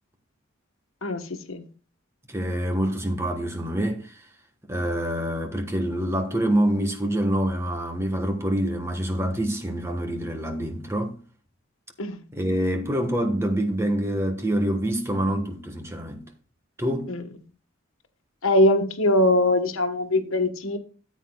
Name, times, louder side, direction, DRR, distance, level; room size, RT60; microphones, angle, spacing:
voice 1, 2.3-4.2 4.6-11.2 12.3-16.3 16.8-17.1, right 1 dB, 15° right, 1.2 m, -26 dB
voice 2, 18.4-20.8, left 1 dB, 90° left, 1.2 m, -21 dB
13.5 x 8.4 x 2.2 m
head